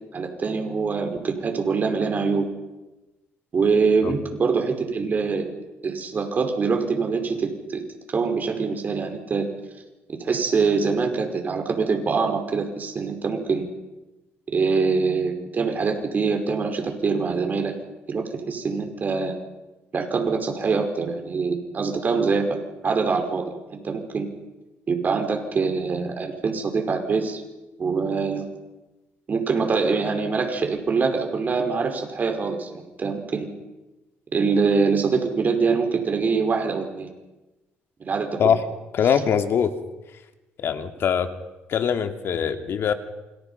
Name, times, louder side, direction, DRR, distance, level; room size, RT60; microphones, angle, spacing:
voice 1, 0.1-2.5 3.5-5.5 5.8-7.8 8.1-9.5 10.2-13.7 14.5-17.7 18.1-19.4 19.9-22.5 22.8-24.3 24.9-27.4 27.8-28.5 29.3-33.5 34.3-37.1 38.0-38.4, right 4 dB, 40° right, 4 dB, 5.3 m, -24 dB
voice 2, 38.9-39.7 40.6-41.3 41.7-42.9, left 8 dB, 60° left, 7 dB, 2.4 m, -22 dB
27.5 x 26.5 x 5.8 m, 1.1 s
cardioid pair, 110°, 5 cm